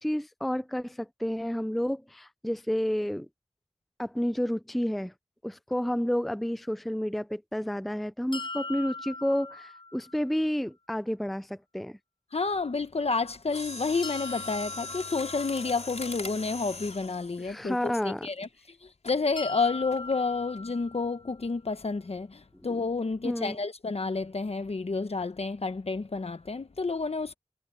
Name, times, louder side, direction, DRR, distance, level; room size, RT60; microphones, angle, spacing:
voice 1, 0.0-3.3 4.0-5.1 5.4-12.0 17.4-18.3 23.2-23.6, equal, ahead, 0.4 m, -30 dB
sound 1, 8.3-10.3 14.0-16.1 19.4-21.4, left 3 dB, 45° left, 7.4 m, -41 dB
voice 2, 12.3-18.5 18.8-27.3, left 4 dB, 65° left, 1.2 m, -30 dB
Mechanisms, 13.5-18.4 19.0-19.3 19.9-20.2 20.6-20.7, left 3 dB, 85° left, 4.9 m, -41 dB
wide cardioid pair, 60°, 11 cm